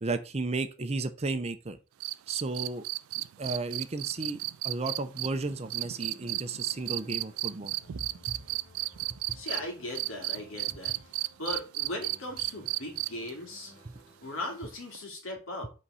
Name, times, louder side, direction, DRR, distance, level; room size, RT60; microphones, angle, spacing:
voice 1, 0.0-1.8 2.3-2.8 3.4-7.8 8.3-8.4, right 3 dB, 30° right, 0.6 m, -33 dB
sound 1, 2.0-9.6 10.0-13.3 14.9-15.0, right 18 dB, 85° right, 0.3 m, -33 dB
sound 2, 5.1-14.6, left 1 dB, 40° left, 1.8 m, -58 dB
voice 2, 9.3-10.9 11.4-13.7 14.2-15.7, left 1 dB, 70° left, 2.4 m, -38 dB
5.7 x 4.0 x 5.6 m
head